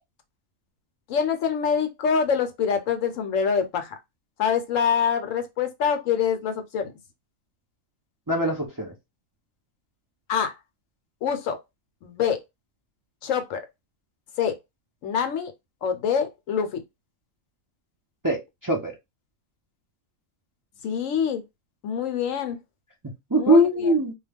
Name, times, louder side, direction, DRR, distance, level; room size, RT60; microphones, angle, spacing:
voice 1, 1.1-3.9 4.4-6.9 10.3-10.6 11.2-11.6 12.0-12.4 13.2-13.6 14.4-14.5 15.0-15.5 15.8-16.8 20.8-21.4 21.8-22.6 23.3-23.9, left 7 dB, 75° left, 1.0 m, -25 dB
voice 2, 8.3-8.9 18.2-18.9 23.3-24.1, equal, 25° right, 0.4 m, -21 dB
2.3 x 2.2 x 3.3 m
omnidirectional pair, 1.4 m